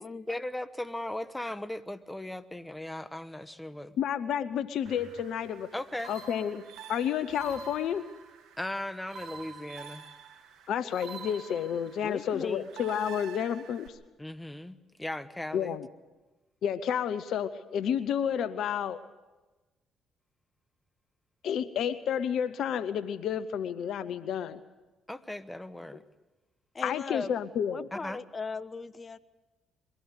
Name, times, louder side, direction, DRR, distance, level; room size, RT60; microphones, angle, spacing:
voice 1, 0.3-4.0 5.7-6.1 8.6-10.0 14.2-15.8 25.1-26.0 27.9-28.2, left 1 dB, 10° left, 13 dB, 1.1 m, -37 dB
voice 2, 4.0-5.7 6.1-6.6 6.9-8.0 10.7-14.0 15.5-15.9 16.6-19.0 21.4-24.6 26.8-27.9, left 8 dB, 65° left, 15 dB, 0.7 m, -30 dB
sound 1, 4.9-13.9, right 5 dB, 70° right, 1.6 m, -47 dB
voice 3, 12.0-12.7 26.7-27.3 27.7-29.2, left 4 dB, 35° left, 15 dB, 1.0 m, -37 dB
22.5 x 16.0 x 8.0 m, 1.1 s
hypercardioid pair, 50°, 0 cm